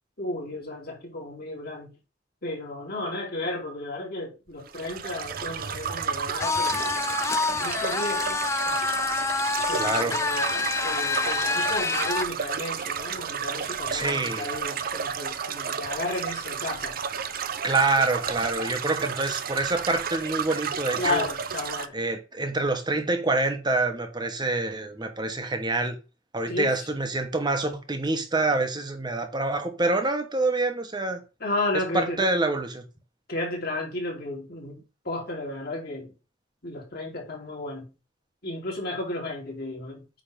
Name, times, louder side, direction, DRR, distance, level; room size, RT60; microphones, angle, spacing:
voice 1, 0.2-1.9 2.4-7.0 7.6-8.8 9.7-17.0 21.0-21.9 26.5-26.9 31.4-32.3 33.3-36.1 36.6-37.9 38.4-40.2, left 2 dB, 50° left, 3.0 m, -33 dB
sound 1, 4.7-21.9, right 7 dB, 50° right, 0.6 m, -32 dB
sound 2, 6.4-12.3, left 4 dB, 15° left, 0.4 m, -27 dB
voice 2, 9.7-10.2 13.9-14.5 17.6-21.3 21.9-26.0 26.3-31.2 31.9-32.9, right 2 dB, 20° right, 1.1 m, -26 dB
9.0 x 3.4 x 5.1 m
head